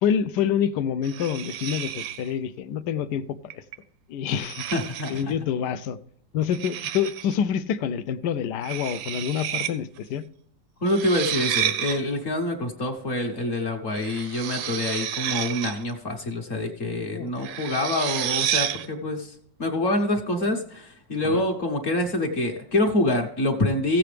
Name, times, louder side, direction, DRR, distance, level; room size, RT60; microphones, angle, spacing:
voice 1, 0.0-3.6 4.1-4.7 5.1-6.0 6.3-10.3 17.0-17.3 21.2-21.4, left 8 dB, 75° left, 14 dB, 1.1 m, -27 dB
sound 1, 1.0-2.3 3.5-3.8 4.3-5.3 6.5-7.3 8.6-9.7 10.0-10.1 10.9-12.0 13.9-15.9 17.4-18.9, right 10 dB, 85° right, 1.5 m, -30 dB
voice 2, 4.7-5.1 10.8-24.0, left 1 dB, 45° left, 2 dB, 1.3 m, -26 dB
15.5 x 7.8 x 3.3 m, 0.66 s
omnidirectional pair, 2.0 m